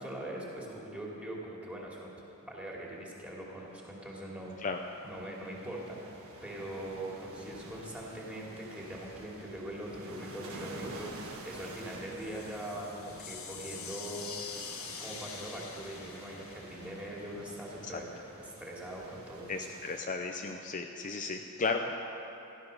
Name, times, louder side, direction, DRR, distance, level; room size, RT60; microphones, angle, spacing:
voice 1, 0.0-2.1 2.5-4.6 5.0-6.1 6.4-14.4 14.8-19.7, right 1 dB, 5° right, -4 dB, 2.6 m, -42 dB
sound 1, 3.1-20.0, right 2 dB, 70° right, 1.8 m, -49 dB
sound 2, 11.8-17.7, left 6 dB, 65° left, 1.6 m, -45 dB
voice 2, 19.5-21.9, left 4 dB, 35° left, 3 dB, 0.6 m, -34 dB
15.5 x 12.0 x 6.5 m, 3.0 s
head